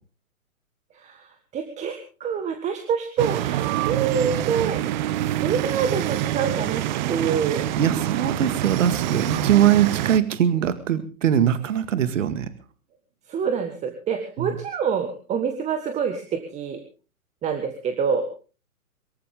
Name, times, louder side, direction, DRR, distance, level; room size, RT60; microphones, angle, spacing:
voice 1, 1.5-4.8 5.4-6.8 7.1-7.6 13.3-16.8 17.4-18.2, right 6 dB, 15° right, 6 dB, 1.6 m, -26 dB
sound 1, 3.2-10.2, right 13 dB, 30° right, 0.9 m, -26 dB
voice 2, 7.5-12.5 14.4-14.6, right 10 dB, 60° right, 11 dB, 2.0 m, -22 dB
23.5 x 14.5 x 3.7 m, 0.36 s
hypercardioid pair, 130°, 43 cm